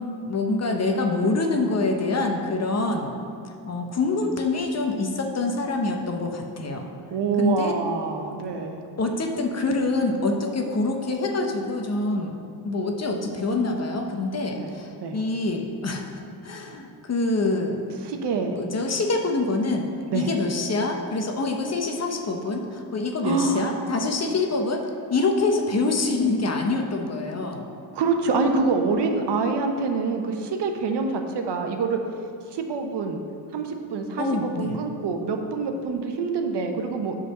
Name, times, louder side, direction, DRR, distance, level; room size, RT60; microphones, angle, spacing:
voice 1, 0.0-3.1 3.7-6.9 7.4-7.8 9.0-12.3 12.6-16.0 16.4-17.8 18.5-19.9 20.1-24.8 25.1-27.6 34.2-34.8, left 3 dB, 35° left, 3 dB, 0.8 m, -25 dB
voice 2, 7.1-8.8 14.6-14.7 15.0-15.2 18.0-18.6 20.1-20.3 23.2-23.7 27.9-32.0 32.5-33.2 33.5-37.2, right 4 dB, 60° right, 4 dB, 0.9 m, -26 dB
8.3 x 4.0 x 6.3 m, 2.5 s
cardioid pair, 95°, 48 cm